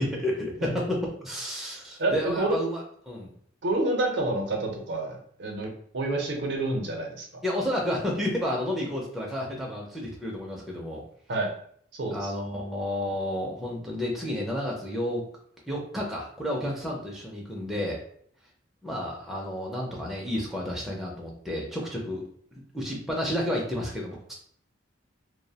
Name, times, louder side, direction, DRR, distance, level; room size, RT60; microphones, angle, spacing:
voice 1, 0.0-3.3 7.4-11.0 12.1-15.2 15.7-18.0 18.8-22.3 22.7-24.3, left 1 dB, ahead, -3 dB, 0.4 m, -31 dB
voice 2, 2.0-2.6 3.6-7.3 11.3-11.5 12.0-12.3, right 2 dB, 60° right, 1 dB, 0.5 m, -28 dB
2.6 x 2.0 x 2.7 m, 0.62 s
head